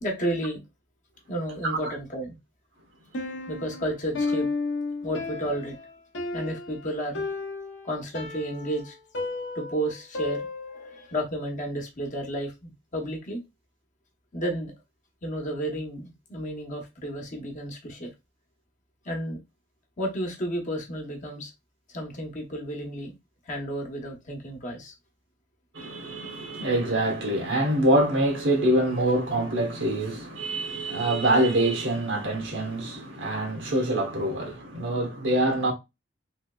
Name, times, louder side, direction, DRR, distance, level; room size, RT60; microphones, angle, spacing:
voice 1, 0.0-0.6 1.3-2.4 3.5-4.5 5.0-5.8 6.3-7.2 7.8-8.9 9.5-13.4 14.3-14.7 15.2-18.1 19.0-19.4 20.0-21.5 21.9-23.1 23.4-24.9, right 1 dB, 45° left, 0.9 m, -32 dB
Piano, 3.1-11.0, left 3 dB, 70° left, 0.7 m, -33 dB
voice 2, 25.7-35.7, right 1 dB, 90° right, 1.1 m, -25 dB
3.3 x 3.0 x 2.2 m
head